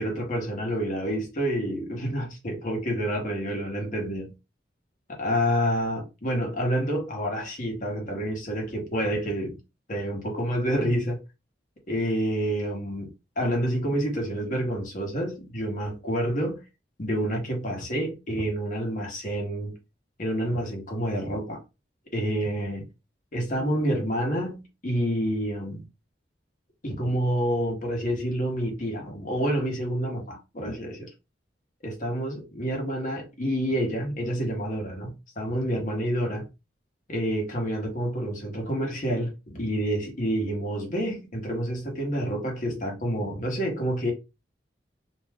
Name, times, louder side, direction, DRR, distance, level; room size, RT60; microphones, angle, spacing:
voice 1, 0.0-4.3 5.1-9.6 9.9-11.2 11.9-13.1 13.4-16.6 17.0-19.7 20.2-21.6 22.1-22.9 23.3-25.8 26.8-31.1 31.8-36.5 37.1-44.1, equal, 45° left, 1.0 m, -28 dB
2.6 x 2.2 x 3.3 m
head